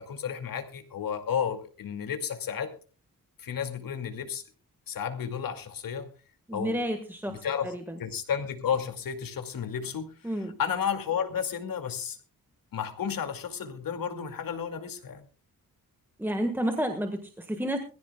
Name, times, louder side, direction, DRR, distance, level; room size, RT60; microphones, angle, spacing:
voice 1, 0.0-2.7 3.4-4.4 4.9-6.1 6.5-6.8 7.3-7.7 8.0-12.2 12.7-15.2, left 7 dB, 75° left, 6 dB, 2.4 m, -32 dB
voice 2, 6.5-8.0 10.2-10.5 16.2-17.8, equal, 5° right, 5 dB, 1.5 m, -31 dB
22.0 x 15.5 x 2.3 m, 0.36 s
wide cardioid pair, 145°, 34 cm